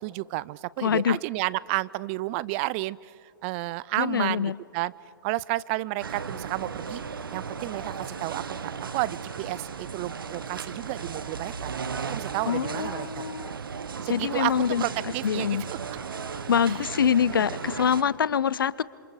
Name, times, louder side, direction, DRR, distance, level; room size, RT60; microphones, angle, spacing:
voice 1, 0.0-3.1 3.4-4.9 5.2-7.0 7.3-11.7 12.1-13.3 14.0-15.6, right 20 dB, 35° right, 21 dB, 0.4 m, -31 dB
voice 2, 0.8-1.2 4.0-4.6 12.5-13.5 14.1-14.8 15.2-15.6 16.5-18.8, left 8 dB, 75° left, 20 dB, 0.6 m, -25 dB
sound 1, 6.0-18.0, right 5 dB, 75° right, 1.1 m, -36 dB
27.5 x 26.5 x 4.8 m, 2.5 s
figure-of-eight pair, 115°, 12 cm